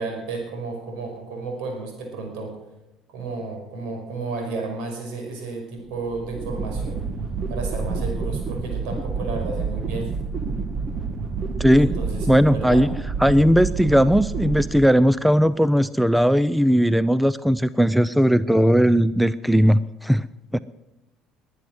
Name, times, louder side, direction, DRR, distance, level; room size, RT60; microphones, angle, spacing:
voice 1, 0.0-2.6 3.1-7.0 7.5-10.1 11.7-12.9, right 3 dB, 70° right, 2 dB, 5.5 m, -32 dB
sound 1, 5.9-15.4, right 4 dB, 40° right, 1.6 m, -28 dB
voice 2, 11.6-11.9 12.3-12.9 13.2-20.2 20.5-20.6, equal, 5° right, 17 dB, 0.5 m, -18 dB
20.5 x 9.7 x 6.4 m, 0.96 s
hypercardioid pair, 60°, 0 cm